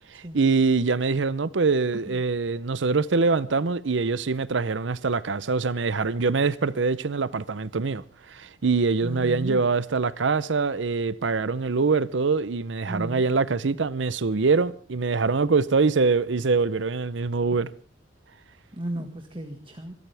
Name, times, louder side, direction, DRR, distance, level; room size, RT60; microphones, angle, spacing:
voice 1, 0.1-17.7, right 4 dB, 75° right, 0.7 m, -24 dB
voice 2, 9.0-9.6 12.9-13.2 18.8-19.9, right 1 dB, 30° right, 1.7 m, -35 dB
26.0 x 13.5 x 3.4 m
head